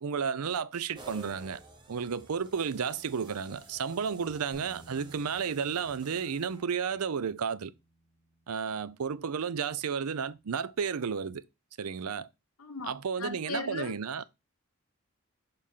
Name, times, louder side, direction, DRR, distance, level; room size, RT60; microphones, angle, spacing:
voice 1, 0.0-1.6 1.9-7.7 8.5-11.4 11.8-12.3 12.8-14.2, right 6 dB, 90° right, 0.5 m, -32 dB
sound 1, 0.9-7.0, right 2 dB, 20° right, 0.9 m, -52 dB
Bass guitar, 4.5-10.8, right 2 dB, 10° left, 2.2 m, -60 dB
voice 2, 12.6-12.9 13.2-14.0, left 4 dB, 80° left, 1.0 m, -37 dB
6.7 x 4.2 x 3.7 m
head